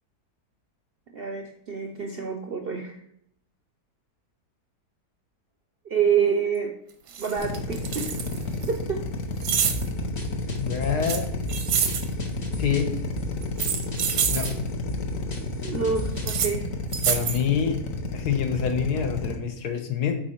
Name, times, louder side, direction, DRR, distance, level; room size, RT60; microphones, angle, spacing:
voice 1, 1.1-3.0 5.9-6.7 7.2-8.1 8.7-9.0 15.6-16.7, right 6 dB, 55° right, 3 dB, 0.6 m, -27 dB
sound 1, 6.5-6.6 7.1-8.7 9.4-9.9 11.0-12.1 13.4-14.5 16.2-16.5 16.9-17.4, right 8 dB, 85° right, 1.4 m, -27 dB
Drill, 7.4-19.4, left 3 dB, 60° left, 1.2 m, -31 dB
sound 2, 9.7-16.4, equal, 35° left, 0.8 m, -38 dB
voice 2, 10.6-11.2 12.6-12.9 14.3-14.5 17.1-17.8 18.1-20.1, left 7 dB, 80° left, 5 dB, 1.5 m, -26 dB
7.7 x 4.2 x 4.4 m, 0.72 s
omnidirectional pair, 1.7 m